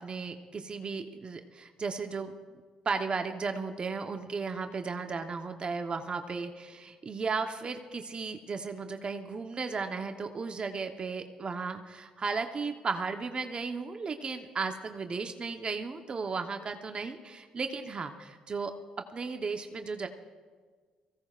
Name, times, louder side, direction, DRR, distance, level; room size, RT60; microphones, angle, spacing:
voice 1, 0.0-2.3 2.8-18.7 19.1-20.1, right 4 dB, 40° right, 6 dB, 1.0 m, -35 dB
22.5 x 16.5 x 2.5 m, 1.5 s
supercardioid pair, 65°, 3 cm